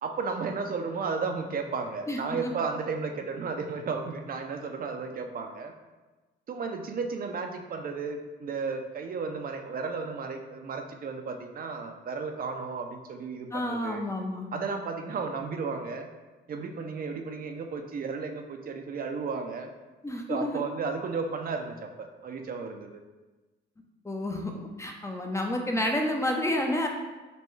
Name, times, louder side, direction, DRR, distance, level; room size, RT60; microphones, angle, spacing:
voice 1, 0.0-5.7 6.5-14.0 14.5-16.1 16.5-19.7 20.3-23.0, right 4 dB, 45° right, 4 dB, 0.5 m, -34 dB
voice 2, 2.1-2.5 13.5-14.5 20.0-20.6 24.0-24.5 24.8-26.9, left 1 dB, 15° left, 2 dB, 0.5 m, -29 dB
5.2 x 2.2 x 3.1 m, 1.2 s
cardioid pair, 90°, 20 cm